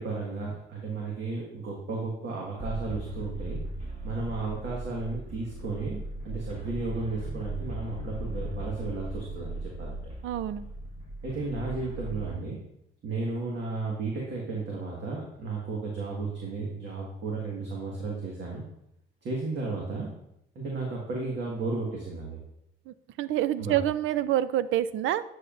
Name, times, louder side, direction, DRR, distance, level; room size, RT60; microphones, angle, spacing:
voice 1, 0.0-3.6 4.0-10.0 11.2-12.6 13.0-18.6 19.2-20.1 20.6-22.4 23.6-23.8, right 3 dB, 60° right, -2 dB, 1.8 m, -34 dB
sound 1, 2.6-12.4, right 1 dB, 35° right, 1.6 m, -37 dB
voice 2, 10.2-10.6 22.9-25.2, right 12 dB, 80° right, 15 dB, 0.4 m, -27 dB
9.8 x 6.8 x 2.6 m, 0.80 s
cardioid pair, 90°, 20 cm